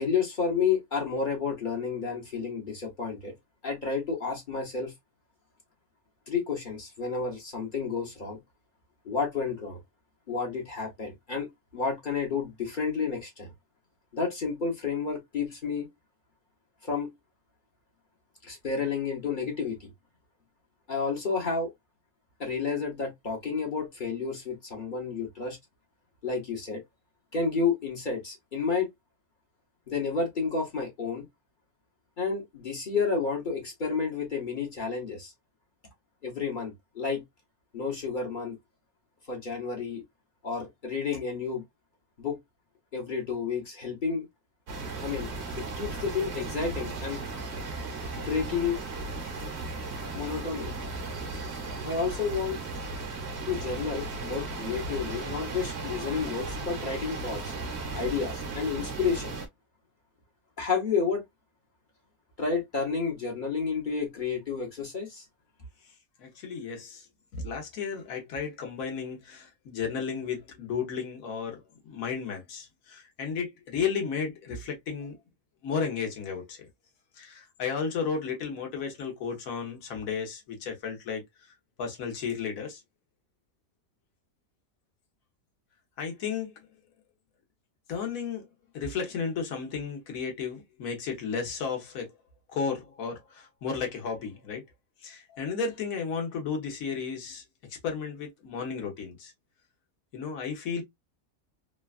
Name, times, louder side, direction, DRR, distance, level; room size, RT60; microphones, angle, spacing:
voice 1, 0.0-3.3 3.6-4.9 6.3-8.4 9.0-9.8 10.3-11.5 11.7-13.5 14.1-15.9 16.8-17.1 18.4-19.9 20.9-21.7 22.4-25.6 26.2-26.8 27.3-28.9 29.9-31.2 32.2-35.3 36.2-37.2 37.7-38.6 39.3-40.0 40.4-41.6 42.2-42.4 42.9-44.2 45.0-45.3 45.6-47.2 48.2-48.8 50.1-50.7 51.8-52.6 53.5-57.5 57.9-59.3 60.6-61.2 62.4-65.2, left 5 dB, 40° left, 1.0 m, -30 dB
sound 1, 44.7-59.5, right 3 dB, 55° right, 1.0 m, -36 dB
voice 2, 66.2-67.1 67.3-75.2 75.6-76.7 77.2-81.2 81.8-82.8 86.0-86.7 87.9-88.5 88.7-92.1 92.5-94.6 95.0-97.4 97.7-99.3 100.1-100.8, left 6 dB, 70° left, 1.3 m, -33 dB
3.1 x 2.3 x 2.3 m
omnidirectional pair, 1.5 m